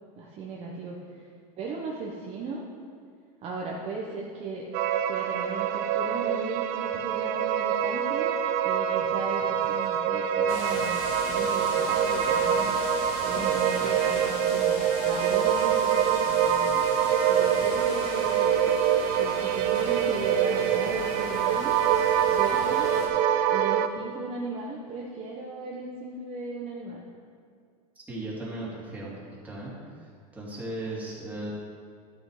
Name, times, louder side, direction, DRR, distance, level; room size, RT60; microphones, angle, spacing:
voice 1, 0.1-1.0 1.6-2.6 3.4-4.6 5.0-8.3 8.6-12.8 13.2-14.8 15.0-16.7 17.3-18.6 19.1-21.7 22.3-23.0 23.5-27.0, right 3 dB, 30° right, -3 dB, 1.1 m, -37 dB
sound 1, 4.7-23.9, right 9 dB, 50° right, 0.6 m, -25 dB
sound 2, 10.5-23.1, left 3 dB, 70° left, 2.3 m, -37 dB
voice 2, 28.1-29.2 29.4-29.7 30.3-31.5, right 2 dB, 10° right, -6 dB, 2.7 m, -36 dB
12.0 x 6.4 x 4.9 m, 2.1 s
supercardioid pair, 140°, 20 cm